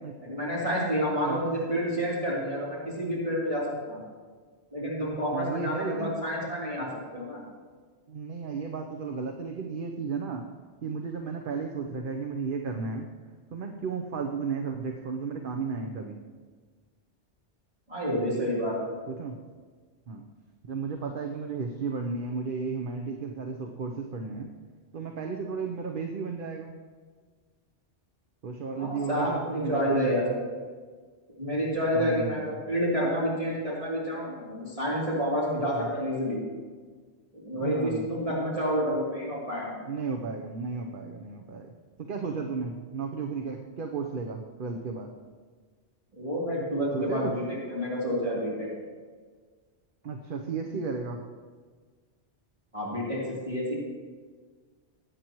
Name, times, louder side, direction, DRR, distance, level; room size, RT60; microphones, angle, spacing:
voice 1, 0.2-4.0 4.7-7.4 17.9-18.9 28.8-30.7 31.4-36.4 37.3-39.7 46.2-48.7 52.7-53.7, equal, 30° right, -8 dB, 3.3 m, -29 dB
voice 2, 5.3-6.1 8.1-10.4 10.8-13.1 13.5-16.2 19.1-19.4 20.1-20.2 20.7-24.5 24.9-26.8 28.4-30.4 31.9-32.6 35.7-35.9 37.6-38.1 39.8-41.7 42.0-45.1 46.9-47.3 50.0-51.2, right 5 dB, 50° right, 3 dB, 0.9 m, -34 dB
20.5 x 9.2 x 3.0 m, 1.5 s
omnidirectional pair, 1.2 m